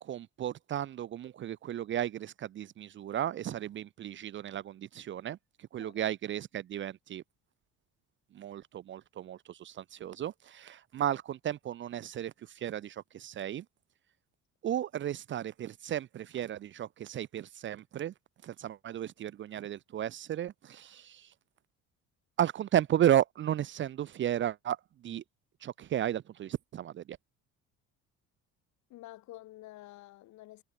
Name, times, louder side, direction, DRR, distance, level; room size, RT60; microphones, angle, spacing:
voice 1, 0.0-5.4 5.7-7.2 8.3-13.6 14.6-18.1 18.4-21.3 22.4-24.8 25.0-25.2 25.6-27.2, right 11 dB, 40° right, 0.9 m, -34 dB
voice 2, 28.9-30.6, left 16 dB, 70° left, 6.6 m, -49 dB
cardioid pair, 165°, 30 cm